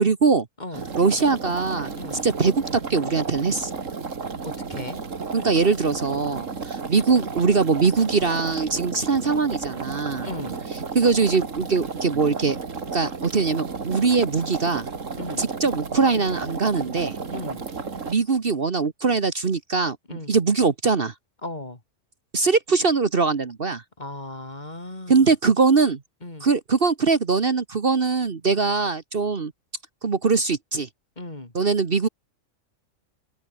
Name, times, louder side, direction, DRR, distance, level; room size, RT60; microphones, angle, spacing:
voice 1, 0.0-0.5 1.0-1.9 2.2-3.8 5.3-10.3 10.9-12.6 12.9-14.9 15.4-17.2 18.0-21.1 22.3-23.8 25.1-26.0 26.4-29.5 30.0-30.9 31.5-32.1, right 4 dB, 45° right, 1.5 m, -22 dB
sound 1, 0.7-18.1, right 5 dB, 75° right, 2.5 m, -33 dB
voice 2, 4.4-5.0 10.2-10.6 15.2-15.4 17.3-17.6 20.1-20.3 21.4-21.8 24.0-25.3 26.2-26.5 31.2-31.5, left 2 dB, 35° left, 3.3 m, -36 dB
omnidirectional pair, 1.3 m